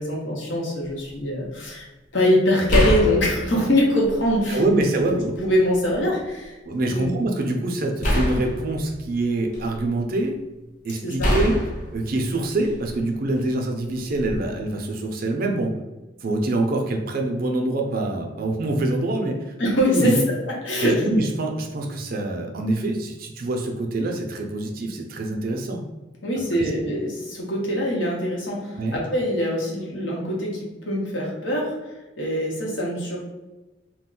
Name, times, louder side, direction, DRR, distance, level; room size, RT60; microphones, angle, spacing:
voice 1, 0.0-1.8 2.1-4.6 5.1-6.5 6.9-7.1 11.0-11.3 19.6-20.4 20.6-21.0 26.2-31.7 32.2-33.2, left 1 dB, 80° left, -2 dB, 0.9 m, -23 dB
sound 1, 0.8-1.1 2.7-4.5 5.0-5.9 8.0-10.0 11.2-13.1 14.1-14.4, equal, 45° left, 0.5 m, -26 dB
voice 2, 4.5-5.3 6.6-10.4 10.8-11.6 11.9-15.8 16.2-19.5 19.9-20.2 20.8-25.8 26.6-26.7 28.8-29.0, right 2 dB, 50° right, 3 dB, 0.4 m, -25 dB
2.3 x 2.2 x 3.7 m, 1.1 s
head